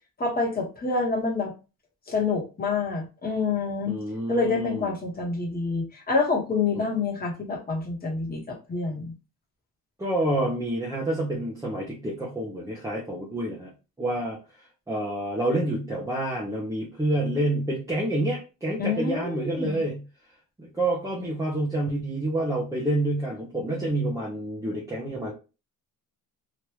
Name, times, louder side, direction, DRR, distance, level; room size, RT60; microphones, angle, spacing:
voice 1, 0.2-1.5 2.1-4.0 4.3-9.1 18.8-19.8, left 4 dB, 25° left, -1 dB, 1.2 m, -27 dB
voice 2, 3.9-4.9 6.7-6.8 10.0-13.7 14.0-14.4 14.9-20.0 20.6-25.3, right 1 dB, 10° right, -6 dB, 0.7 m, -28 dB
3.0 x 2.5 x 3.3 m, 0.31 s
cardioid pair, 145°, 36 cm